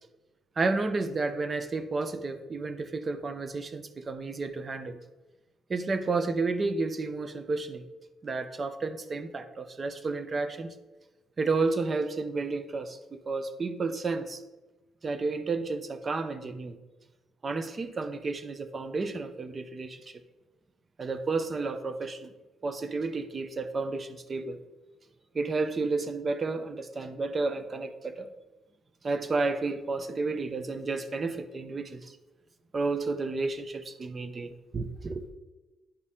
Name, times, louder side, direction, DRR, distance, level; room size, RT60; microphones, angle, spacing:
voice 1, 0.6-5.0 5.7-7.8 8.2-10.7 11.4-14.4 15.0-16.8 17.4-20.1 21.0-22.3 22.6-24.6 25.3-28.3 29.0-32.2 32.7-35.2, right 3 dB, 35° right, 10 dB, 0.7 m, -31 dB
10.5 x 4.1 x 3.7 m, 1.1 s
cardioid pair, 90°, 0 cm